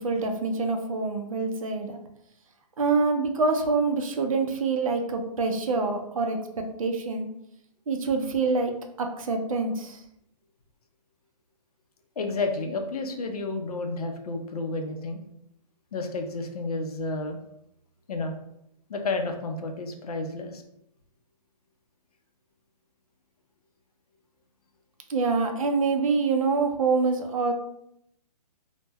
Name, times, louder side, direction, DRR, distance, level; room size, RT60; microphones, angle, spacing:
voice 1, 0.0-2.0 2.8-7.3 7.9-10.0 25.1-27.5, right 4 dB, 55° right, 4 dB, 0.4 m, -26 dB
voice 2, 12.2-15.2 15.9-17.4 18.1-18.3 18.9-20.6, left 3 dB, 65° left, 4 dB, 0.5 m, -31 dB
2.1 x 2.1 x 3.3 m, 0.77 s
hypercardioid pair, 175°, 21 cm